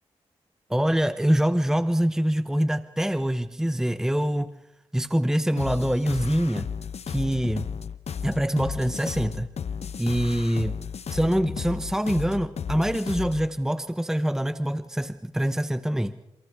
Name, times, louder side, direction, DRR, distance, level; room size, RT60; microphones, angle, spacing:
voice 1, 0.7-4.5 4.9-6.7 7.1-7.7 8.2-9.5 10.0-10.8 11.1-16.1, equal, 5° right, 11 dB, 1.0 m, -25 dB
sound 1, 5.6-13.5, left 7 dB, 65° left, 1.0 m, -34 dB
29.0 x 28.5 x 3.6 m, 0.82 s
cardioid pair, 50°, 12 cm